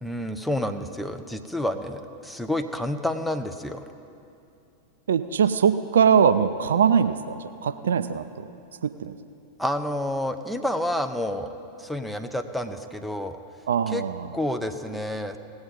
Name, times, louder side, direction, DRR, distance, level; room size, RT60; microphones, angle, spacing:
voice 1, 0.0-3.9 9.6-11.5 11.8-13.4 13.9-14.0 14.3-15.4, left 1 dB, ahead, 6 dB, 0.6 m, -29 dB
voice 2, 5.1-8.5 8.8-9.1 13.7-14.2, right 7 dB, 65° right, 11 dB, 0.4 m, -22 dB
18.0 x 7.9 x 5.4 m, 2.6 s
figure-of-eight pair, 90°, 0 cm